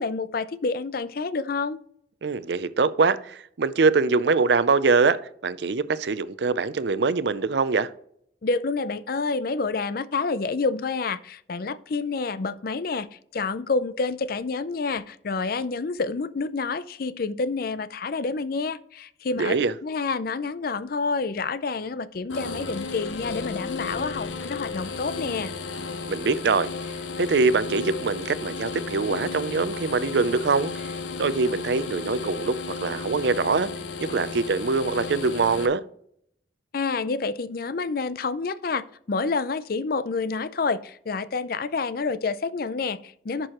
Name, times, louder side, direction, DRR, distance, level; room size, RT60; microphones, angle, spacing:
voice 1, 0.0-1.8 8.4-19.6 19.8-25.5 36.7-43.5, left 4 dB, 55° left, 0.5 m, -28 dB
voice 2, 2.2-7.9 19.4-19.7 26.1-26.7 27.2-30.9 31.2-32.5 32.8-33.7 34.1-35.8, right 4 dB, 65° right, 0.5 m, -23 dB
sound 1, 22.3-35.7, left 4 dB, 90° left, 0.9 m, -34 dB
11.0 x 6.1 x 3.0 m
head